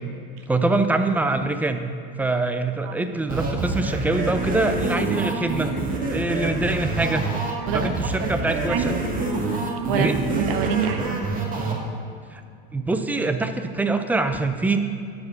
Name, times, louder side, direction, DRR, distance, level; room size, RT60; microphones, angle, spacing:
voice 1, 0.5-1.8 2.2-5.7 6.1-7.3 7.7-8.9 10.0-10.1 12.3-12.4 12.7-14.8, right 2 dB, 5° right, 8 dB, 0.4 m, -24 dB
sound 1, 3.3-11.7, right 3 dB, 30° right, 1.6 m, -26 dB
sound 2, 4.1-6.7 7.0-8.3 8.6-8.7 9.0-9.1 9.5-9.6 10.6-11.6, left 6 dB, 60° left, 1.3 m, -42 dB
voice 2, 9.9-11.2, right 7 dB, 75° right, 6 dB, 1.1 m, -26 dB
11.0 x 4.8 x 5.8 m, 2.5 s
supercardioid pair, 125°, 29 cm